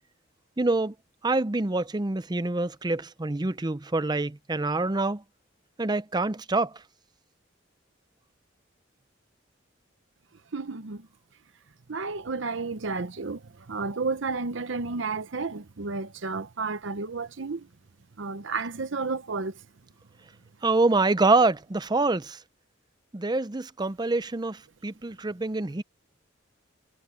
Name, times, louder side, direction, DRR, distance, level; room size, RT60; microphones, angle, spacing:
voice 1, 0.6-0.9 1.2-5.2 5.8-6.7 20.6-22.4 23.1-25.8, right 3 dB, 20° right, 0.6 m, -26 dB
voice 2, 10.5-11.1 11.9-13.4 13.7-17.7 18.2-19.5, right 4 dB, 70° right, 0.8 m, -31 dB
head